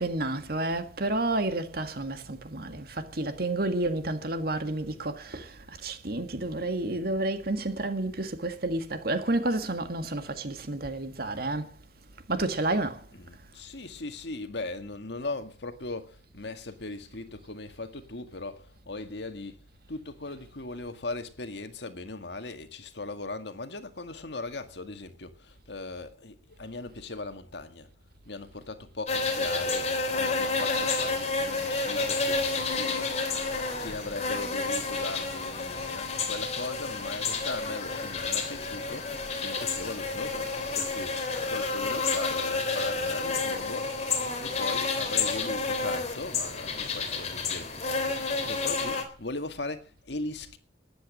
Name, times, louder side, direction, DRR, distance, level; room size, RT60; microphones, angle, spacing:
voice 1, 0.0-11.7 12.3-13.0, right 2 dB, 55° right, 1.9 m, -30 dB
voice 2, 13.1-19.6 19.9-27.9 28.3-33.4 33.8-41.2 41.5-43.9 44.4-50.6, left 2 dB, 70° left, 1.9 m, -39 dB
sound 1, 29.1-49.0, left 4 dB, 35° left, 3.4 m, -30 dB
13.5 x 10.5 x 7.5 m
head